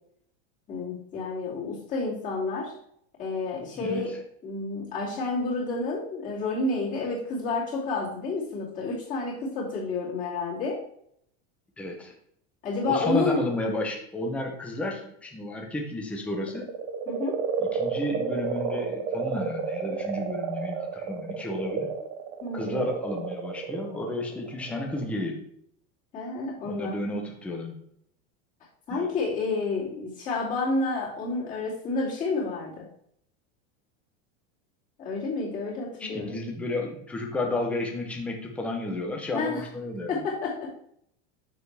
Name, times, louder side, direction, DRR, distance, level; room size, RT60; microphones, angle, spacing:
voice 1, 0.7-2.7 3.2-4.1 4.4-10.8 12.6-13.4 17.1-17.4 22.4-22.9 26.1-27.0 28.9-32.9 35.0-36.4 39.3-39.6 40.1-40.7, left 3 dB, 20° left, -6 dB, 2.6 m, -30 dB
voice 2, 3.8-4.2 11.8-12.1 12.9-16.7 17.6-21.9 22.5-25.4 26.6-27.8 28.9-29.1 36.0-40.2, left 2 dB, 5° left, 1 dB, 0.6 m, -32 dB
sound 1, 16.3-25.1, right 6 dB, 30° right, 0.7 m, -32 dB
7.0 x 6.5 x 3.3 m, 0.68 s
supercardioid pair, 175°, 35 cm